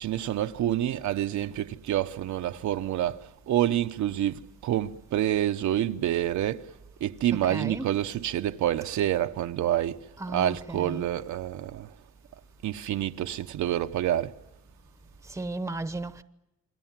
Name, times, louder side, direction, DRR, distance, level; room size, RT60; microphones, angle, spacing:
voice 1, 0.0-6.7 7.0-10.0 10.3-11.9 12.6-14.3, right 12 dB, 75° right, 1.0 m, -28 dB
voice 2, 7.3-8.0 10.2-11.1 15.2-16.2, right 2 dB, 10° right, 1.0 m, -35 dB
28.5 x 23.0 x 7.5 m
cardioid pair, 130°, 29 cm